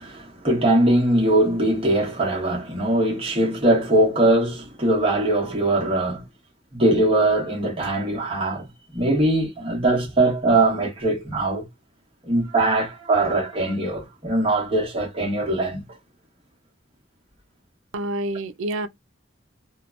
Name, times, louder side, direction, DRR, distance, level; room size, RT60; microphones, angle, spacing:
voice 1, 0.0-6.2 6.7-8.7 8.9-11.6 12.3-15.8, right 1 dB, 25° right, 1.1 m, -21 dB
voice 2, 17.9-18.9, right 1 dB, 80° right, 0.5 m, -27 dB
2.7 x 2.2 x 2.5 m
head